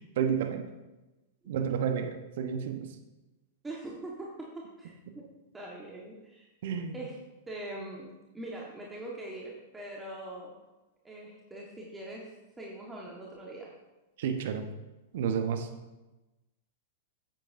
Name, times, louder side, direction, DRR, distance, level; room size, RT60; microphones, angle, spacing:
voice 1, 0.2-0.7 1.5-2.9 6.6-6.9 14.2-14.6 15.1-15.7, right 7 dB, 65° right, 7 dB, 1.0 m, -30 dB
voice 2, 3.6-5.3 5.5-6.5 6.9-7.2 7.5-10.5 11.0-13.7, right 1 dB, 10° right, -3 dB, 1.4 m, -42 dB
8.8 x 8.5 x 2.6 m, 1.1 s
hypercardioid pair, 105°, 0 cm